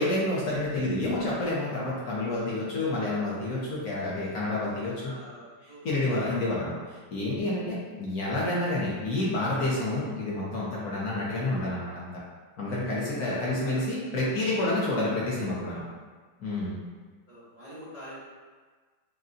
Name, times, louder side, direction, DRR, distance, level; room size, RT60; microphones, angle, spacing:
voice 1, 0.0-5.1 5.8-12.1 12.6-15.8 16.4-16.8, left 2 dB, 60° left, -6 dB, 1.1 m, -29 dB
voice 2, 4.2-5.8 7.4-7.5 10.7-10.9 11.9-12.2 12.6-12.9 13.2-14.3 15.7-15.9 16.4-16.6 17.3-18.2, equal, 30° right, -11 dB, 0.7 m, -47 dB
6.3 x 2.2 x 2.6 m, 1.4 s
omnidirectional pair, 2.0 m